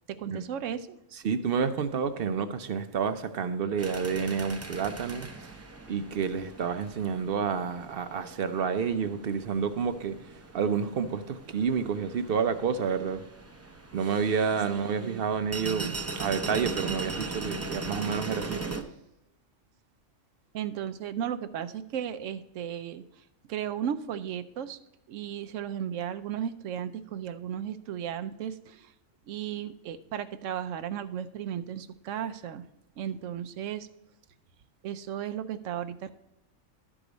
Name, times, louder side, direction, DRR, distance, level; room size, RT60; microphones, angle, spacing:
voice 1, 0.1-1.0 14.7-15.2 15.5-15.9 20.5-24.8 25.1-28.9 29.3-32.7 33.0-33.9 34.8-36.1, right 9 dB, 85° right, 1.0 m, -35 dB
voice 2, 1.1-5.3 5.9-10.1 10.5-13.2 13.9-18.6, right 6 dB, 55° right, 0.7 m, -29 dB
sound 1, 3.8-18.8, right 3 dB, 20° right, 0.4 m, -40 dB
12.5 x 4.9 x 3.9 m
omnidirectional pair, 1.3 m